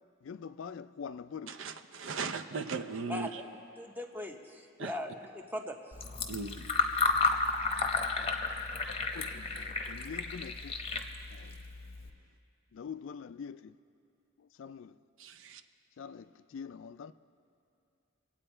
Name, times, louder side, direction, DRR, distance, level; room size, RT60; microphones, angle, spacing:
voice 1, 0.2-1.6 8.2-8.3 8.9-10.8 11.3-11.6 12.7-13.7 14.4-15.0 16.0-17.1, left 6 dB, 65° left, 0.3 m, -45 dB
voice 2, 1.5-3.3 4.8-4.9 6.3-6.7 15.2-15.6, right 4 dB, 65° right, 0.6 m, -37 dB
voice 3, 3.1-3.5 3.8-5.8, left 1 dB, 10° right, 0.8 m, -40 dB
Fill (with liquid), 5.9-12.1, left 4 dB, 30° left, 0.8 m, -32 dB
24.5 x 8.8 x 4.4 m
head